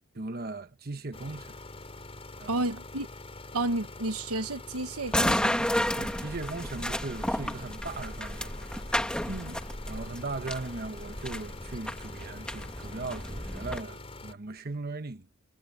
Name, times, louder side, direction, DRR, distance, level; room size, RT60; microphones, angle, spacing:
voice 1, 0.1-1.6 2.4-2.6 6.0-8.6 9.9-15.3, right 3 dB, 45° right, 1.1 m, -38 dB
sound 1, 1.1-14.3, left 2 dB, 25° left, 5.4 m, -45 dB
voice 2, 2.5-3.1 3.5-5.7 9.3-9.6, right 2 dB, 75° right, 1.3 m, -32 dB
sound 2, 5.1-13.8, left 1 dB, 5° left, 1.3 m, -32 dB
head